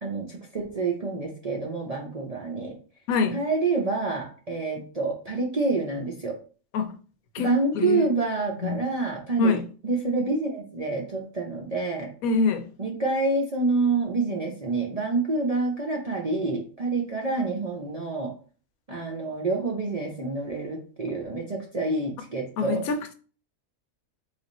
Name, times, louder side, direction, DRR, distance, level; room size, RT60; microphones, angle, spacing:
voice 1, 0.0-2.7 3.3-6.3 7.4-9.6 9.8-12.1 12.8-18.3 18.9-22.8, right 3 dB, 45° right, 0.5 m, -27 dB
voice 2, 3.1-3.4 6.7-6.9 7.3-8.1 8.6-8.8 9.4-9.6 12.2-12.7 22.6-23.1, left 4 dB, 85° left, 1.1 m, -25 dB
3.4 x 2.5 x 4.1 m
omnidirectional pair, 1.5 m